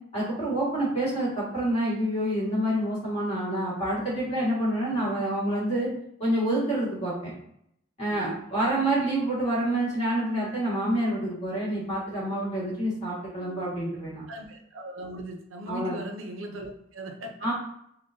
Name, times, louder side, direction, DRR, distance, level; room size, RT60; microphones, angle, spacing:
voice 1, 0.1-5.9 6.2-7.3 8.0-14.2 15.7-16.0 17.4-17.5, right 1 dB, 30° left, -7 dB, 1.5 m, -27 dB
voice 2, 8.1-8.4 14.3-17.5, right 1 dB, 75° right, 3 dB, 0.5 m, -38 dB
3.6 x 2.2 x 2.5 m, 0.72 s
head